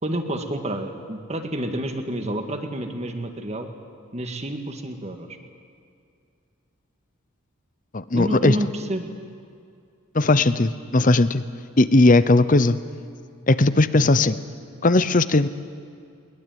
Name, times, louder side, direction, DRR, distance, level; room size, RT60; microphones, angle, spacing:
voice 1, 0.0-3.7 4.1-5.4 8.1-9.1, right 1 dB, 30° right, 6 dB, 1.9 m, -29 dB
voice 2, 7.9-8.6 10.1-11.4 11.8-12.8 13.5-14.4 14.8-15.5, left 2 dB, 40° left, 15 dB, 0.8 m, -18 dB
22.0 x 21.0 x 9.3 m, 2.4 s
head